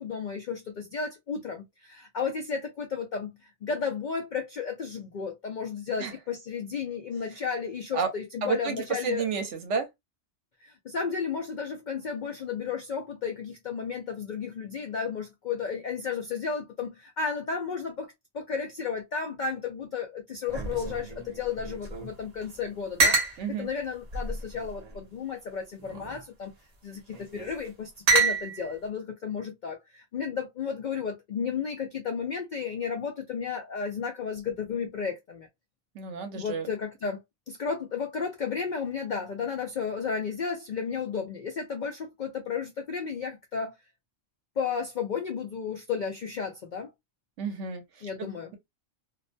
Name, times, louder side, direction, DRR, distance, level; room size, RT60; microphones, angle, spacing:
voice 1, 0.0-3.3 3.6-9.3 10.6-26.5 26.8-35.5 36.3-37.2 37.5-43.7 44.6-46.9 48.0-48.5, left 6 dB, 80° left, 0.4 m, -33 dB
voice 2, 8.4-9.9 23.4-23.7 35.9-36.7 47.4-48.1, right 6 dB, 65° right, 0.9 m, -31 dB
sound 1, 20.5-22.1 22.4-22.5 23.0-23.4 24.1-25.0 25.8-26.2 27.1-27.5 28.1-28.7, right 4 dB, 50° right, 0.5 m, -27 dB
2.5 x 2.1 x 2.4 m
omnidirectional pair, 1.4 m